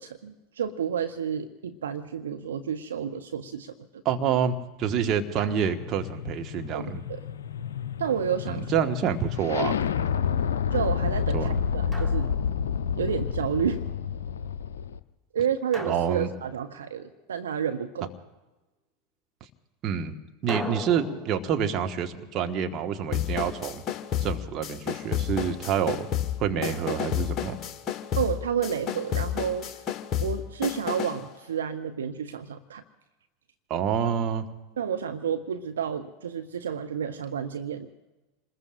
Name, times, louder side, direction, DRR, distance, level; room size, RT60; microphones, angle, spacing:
voice 1, 0.0-3.7 6.7-7.2 8.0-8.9 10.7-12.3 13.0-13.8 15.3-18.1 28.2-29.7 30.2-32.8 34.8-37.9, right 8 dB, 75° right, 9 dB, 0.8 m, -30 dB
voice 2, 4.0-7.0 8.5-9.8 11.3-11.6 15.8-16.3 19.8-20.2 20.4-23.8 24.2-26.1 26.4-27.6 33.7-34.4, right 8 dB, 40° right, 6 dB, 1.5 m, -27 dB
sound 1, 4.8-15.0, left 7 dB, 75° left, 0.7 m, -30 dB
Drum, 5.4-6.1 8.1-9.1 11.9-13.1 15.7-17.4 20.5-23.5, right 1 dB, 5° right, 1.6 m, -41 dB
sound 2, 23.1-31.3, left 10 dB, 35° left, 1.4 m, -31 dB
27.5 x 20.5 x 2.5 m, 1.1 s
figure-of-eight pair, 85°, 0 cm